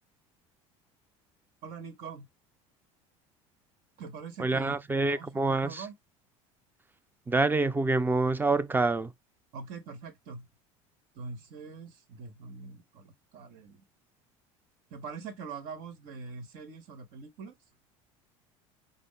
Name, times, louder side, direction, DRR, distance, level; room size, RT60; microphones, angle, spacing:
voice 1, 1.6-2.3 4.0-4.7 5.1-5.9 9.5-10.5 11.1-13.8 14.9-17.5, right 5 dB, 60° right, 1.3 m, -43 dB
voice 2, 4.4-5.8 7.3-9.1, right 3 dB, 10° right, 0.5 m, -26 dB
5.1 x 2.0 x 3.7 m
hypercardioid pair, 80°, 17 cm